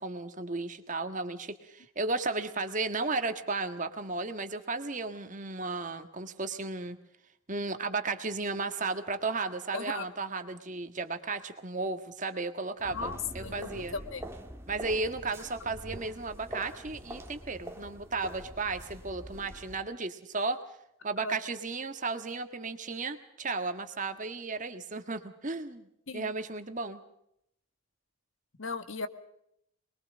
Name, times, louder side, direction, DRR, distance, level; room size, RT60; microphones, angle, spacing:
voice 1, 0.0-7.0 7.5-13.9 14.7-20.6 21.0-25.9 26.1-27.0, right 3 dB, 35° right, 8 dB, 1.6 m, -34 dB
voice 2, 9.7-10.1 12.9-14.2 21.2-21.3 26.1-26.3 28.6-29.1, left 4 dB, 65° left, 11 dB, 1.6 m, -37 dB
sound 1, 12.8-19.8, right 1 dB, 10° right, 1.7 m, -44 dB
25.0 x 22.0 x 5.1 m, 0.75 s
head